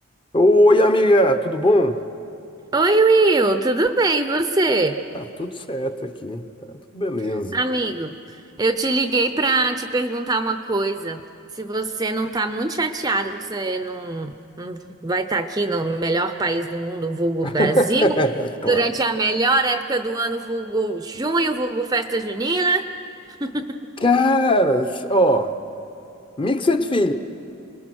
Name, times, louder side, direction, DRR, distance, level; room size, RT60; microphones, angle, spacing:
voice 1, 0.3-2.0 5.1-6.4 6.7-7.6 17.4-18.9 24.0-25.5 26.4-27.1, left 1 dB, 20° left, 7 dB, 0.8 m, -19 dB
voice 2, 2.7-5.0 7.3-11.2 11.5-18.2 18.7-22.9 23.4-23.8, right 2 dB, 15° right, 8 dB, 0.6 m, -22 dB
29.0 x 20.5 x 6.3 m, 2.8 s
head